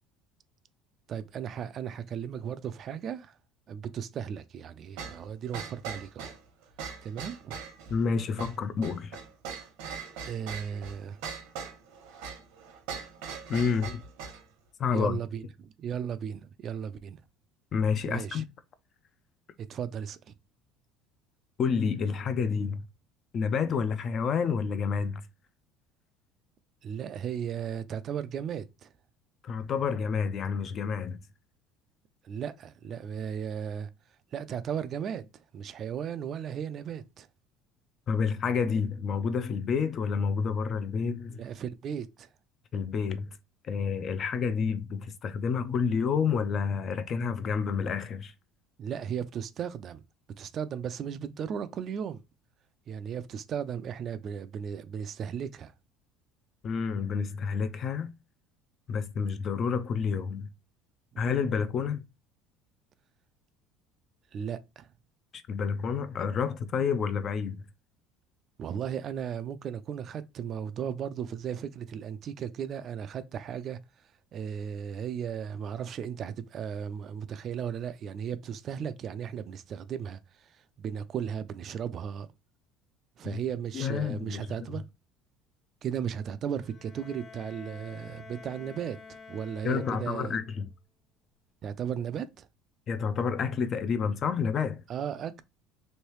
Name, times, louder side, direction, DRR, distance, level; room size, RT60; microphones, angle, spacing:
voice 1, 1.1-3.3 3.7-6.3 7.0-7.6 10.2-11.2 14.9-17.2 18.1-18.4 19.7-20.3 26.8-28.9 32.2-33.9 34.3-35.3 35.5-37.3 41.4-42.3 48.8-50.0 50.4-52.2 52.9-55.7 61.1-61.3 64.3-64.9 68.6-73.8 74.3-80.2 80.8-82.3 83.2-84.8 85.8-90.4 91.6-92.5 94.9-95.4, right 8 dB, 40° right, 0.3 m, -36 dB
sound 1, 5.0-14.4, right 6 dB, 85° right, 1.0 m, -41 dB
voice 2, 7.9-9.2 13.5-14.0 14.8-15.2 17.7-18.5 21.6-22.8 23.3-25.2 29.4-31.2 38.1-41.4 42.7-43.3 43.7-48.3 56.6-58.1 58.9-60.5 61.2-62.0 65.3-67.6 83.2-83.4 83.7-84.5 89.6-90.7 92.9-94.8, left 6 dB, 40° left, 0.4 m, -29 dB
Bowed string instrument, 86.5-90.6, left 5 dB, 25° left, 0.8 m, -49 dB
3.2 x 2.6 x 3.0 m
cardioid pair, 125°, 0 cm